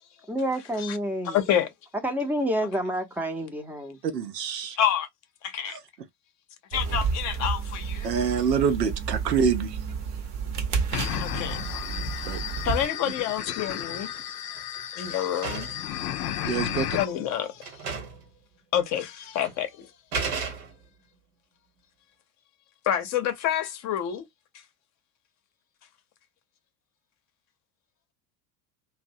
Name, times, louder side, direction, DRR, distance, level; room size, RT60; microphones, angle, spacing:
voice 1, 0.3-1.4 2.0-4.0, equal, 5° right, 0.5 m, -29 dB
voice 2, 1.2-1.7 4.8-5.1 5.4-5.8 6.7-8.1 11.2-11.6 12.6-14.2 14.9-15.7 16.9-17.9 18.7-19.9 22.9-24.3, left 10 dB, 35° left, 0.7 m, -28 dB
voice 3, 4.0-4.8 5.7-5.8 8.0-9.8 12.3-12.4 16.4-16.9, right 6 dB, 85° right, 0.6 m, -26 dB
sound 1, 6.7-12.9, right 5 dB, 40° right, 0.8 m, -31 dB
sound 2, 10.9-17.1, left 10 dB, 75° left, 0.5 m, -33 dB
sound 3, 13.7-14.2 14.6-15.9 16.8-16.9 17.3-17.4 17.6-18.3 18.6-18.7 19.4-19.6 20.1-21.0, right 5 dB, 70° right, 1.1 m, -34 dB
2.6 x 2.1 x 2.6 m
figure-of-eight pair, 75°, 48 cm